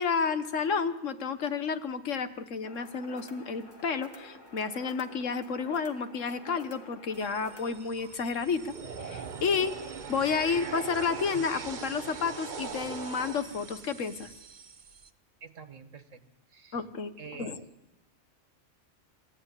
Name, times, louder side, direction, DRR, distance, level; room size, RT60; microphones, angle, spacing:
voice 1, 0.0-8.7 9.0-9.7 10.1-14.3 16.7-17.1 17.4-17.6, left 5 dB, 80° left, 10 dB, 1.6 m, -31 dB
sound 1, 2.6-7.8, equal, 20° left, 2.5 m, -49 dB
sound 2, 7.1-15.1, right 6 dB, 40° right, 1.0 m, -41 dB
voice 2, 15.4-16.2 16.5-16.8 17.2-17.6, right 5 dB, 85° right, 9 dB, 2.0 m, -47 dB
24.0 x 15.5 x 9.8 m, 0.99 s
omnidirectional pair, 1.3 m